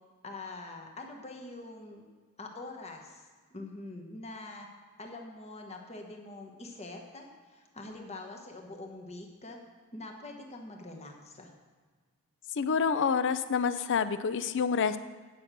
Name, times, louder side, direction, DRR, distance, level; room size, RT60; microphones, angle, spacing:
voice 1, 0.2-2.0 2.4-4.7 5.0-9.6 9.9-11.5, left 2 dB, 30° left, 2 dB, 1.2 m, -44 dB
voice 2, 12.6-15.0, left 6 dB, 55° left, 13 dB, 0.5 m, -28 dB
9.5 x 6.1 x 6.7 m, 1.5 s
head